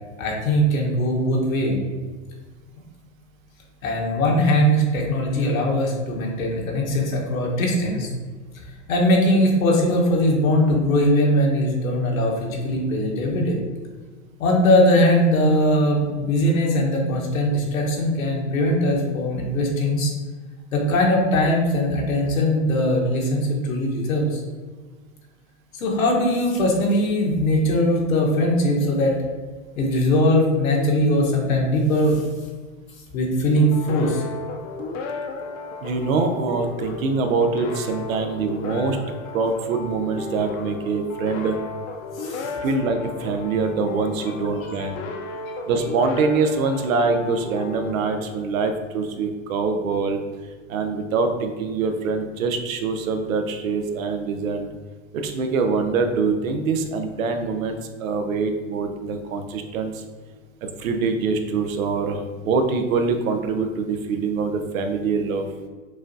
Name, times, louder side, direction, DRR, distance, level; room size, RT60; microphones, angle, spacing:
voice 1, 0.2-1.8 3.8-8.1 8.9-13.6 14.4-20.1 20.7-24.4 25.7-29.2 29.8-32.2 33.1-34.2 42.2-42.5 44.6-44.7 45.5-45.6, left 1 dB, 90° left, -1 dB, 1.3 m, -20 dB
sound 1, 33.6-48.9, left 3 dB, 70° left, 0.7 m, -34 dB
voice 2, 35.8-39.0 39.3-41.6 42.6-44.9 45.7-50.2 50.7-54.7 55.1-60.0 60.8-65.4, right 4 dB, 85° right, 6 dB, 0.7 m, -24 dB
6.1 x 2.4 x 2.7 m, 1.4 s
hypercardioid pair, 125°, 40 cm